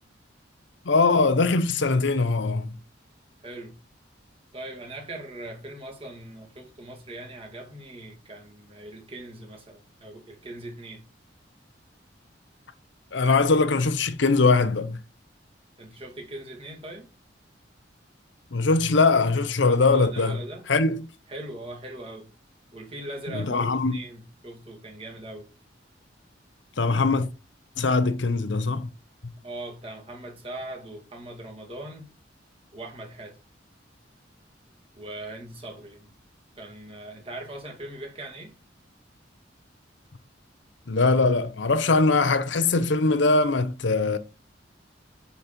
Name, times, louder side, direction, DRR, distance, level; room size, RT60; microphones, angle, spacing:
voice 1, 0.8-2.7 13.1-15.0 18.5-20.4 20.7-21.0 23.3-24.0 26.8-27.3 27.8-28.9 29.2-29.3 40.9-44.2, left 3 dB, 75° left, 0.8 m, -21 dB
voice 2, 3.4-3.8 4.5-11.0 15.8-17.1 19.7-20.6 21.3-22.3 22.7-25.5 29.4-32.1 32.7-33.4 34.9-36.1 36.6-38.5, right 1 dB, 30° right, 2.3 m, -40 dB
8.8 x 4.2 x 5.2 m
head